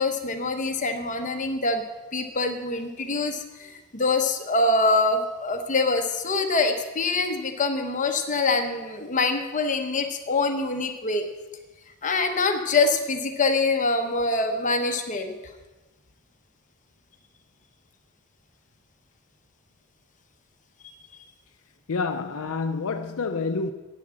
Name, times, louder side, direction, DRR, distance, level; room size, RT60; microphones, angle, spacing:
voice 1, 0.0-1.8 2.1-11.3 12.0-15.3, left 3 dB, 35° left, 0.9 m, -25 dB
voice 2, 21.9-23.7, left 4 dB, 65° left, 0.6 m, -28 dB
10.5 x 8.5 x 7.5 m
head